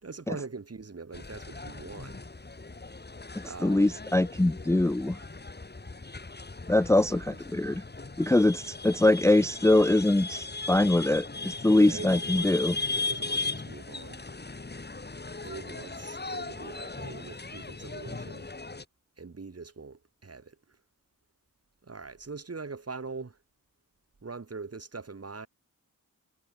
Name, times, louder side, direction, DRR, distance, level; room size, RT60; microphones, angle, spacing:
voice 1, 0.0-2.2 3.4-4.0 7.1-7.6 11.8-12.6 12.9-14.2 15.4-18.5 19.2-20.8 21.8-23.4 24.2-25.5, right 4 dB, 45° right, 4.0 m, -42 dB
sound 1, 1.1-18.9, left 3 dB, 30° left, 3.2 m, -38 dB
voice 2, 3.6-5.2 6.7-7.8 8.2-12.8, left 2 dB, 10° left, 0.5 m, -23 dB
wide cardioid pair, 120°, 33 cm